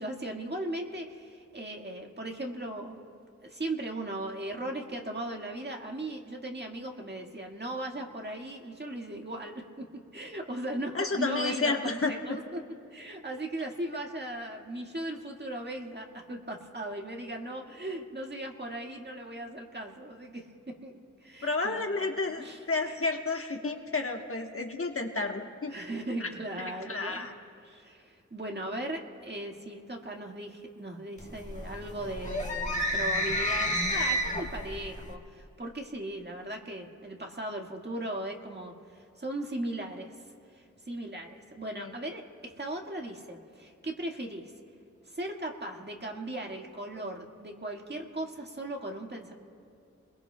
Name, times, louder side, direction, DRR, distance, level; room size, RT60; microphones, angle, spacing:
voice 1, 0.0-3.0 3.4-9.9 10.1-12.6 12.9-21.8 22.4-22.9 23.6-23.7 25.7-27.3 27.6-40.1 40.5-44.5 45.1-49.3, right 1 dB, 35° right, 1 dB, 1.8 m, -38 dB
voice 2, 10.9-12.1 21.4-25.7 26.2-26.3 26.6-27.3 41.7-41.9, left 3 dB, 45° left, 2 dB, 1.3 m, -31 dB
sound 1, 31.2-35.1, equal, 25° left, 1.7 m, -31 dB
29.5 x 21.5 x 2.3 m, 2.6 s
wide cardioid pair, 60°, 30 cm